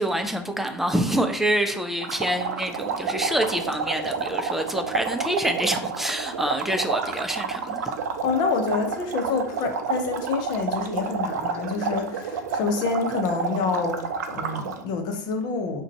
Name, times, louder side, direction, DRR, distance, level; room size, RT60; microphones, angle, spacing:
voice 1, 0.0-7.9, right 1 dB, 5° right, 0.4 m, -26 dB
sound 1, 2.0-14.8, right 5 dB, 75° right, 0.4 m, -30 dB
voice 2, 8.2-14.0 14.3-15.8, left 4 dB, 50° left, 0.6 m, -27 dB
2.5 x 2.2 x 4.0 m
figure-of-eight pair, 80°, 9 cm